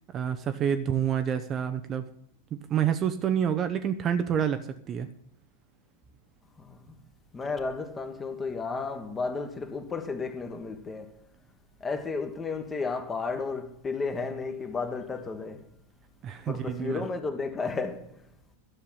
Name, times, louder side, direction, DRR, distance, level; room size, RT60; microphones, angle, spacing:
voice 1, 0.1-2.0 2.7-5.1 16.2-17.0, right 8 dB, 30° right, 0.7 m, -28 dB
voice 2, 6.6-7.0 7.3-11.2 11.8-15.7 16.5-18.3, left 4 dB, 15° left, 1.4 m, -33 dB
12.0 x 7.1 x 8.5 m
figure-of-eight pair, 90°, 0 cm